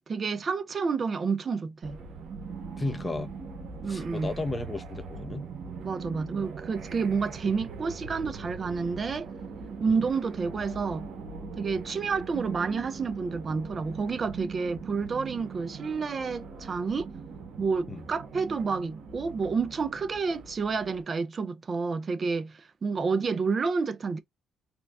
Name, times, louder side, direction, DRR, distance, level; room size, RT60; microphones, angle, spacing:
voice 1, 0.1-2.0 3.8-4.3 5.8-9.3 9.8-11.1 11.6-17.1 17.6-24.2, right 5 dB, 40° right, 0.5 m, -29 dB
sound 1, 1.8-21.0, right 5 dB, 65° right, 1.3 m, -41 dB
voice 2, 2.8-3.3 3.9-5.5 9.9-10.0 17.9-18.0, left 2 dB, 20° left, 0.8 m, -34 dB
3.8 x 3.2 x 2.3 m
cardioid pair, 90°, 0 cm